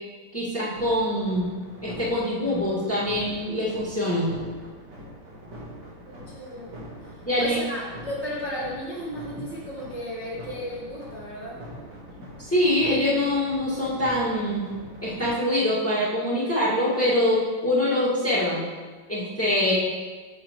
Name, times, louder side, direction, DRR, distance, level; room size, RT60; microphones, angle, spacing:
voice 1, 0.3-1.5 1.8-4.3 7.3-7.6 12.5-14.7 15.0-18.6 19.1-19.9, left 1 dB, 5° left, -8 dB, 1.8 m, -24 dB
sound 1, 0.7-15.3, equal, 60° right, 2.3 m, -43 dB
voice 2, 6.1-6.8 7.4-11.5, equal, 25° right, -8 dB, 1.5 m, -34 dB
9.2 x 7.0 x 3.1 m, 1.4 s
omnidirectional pair, 2.1 m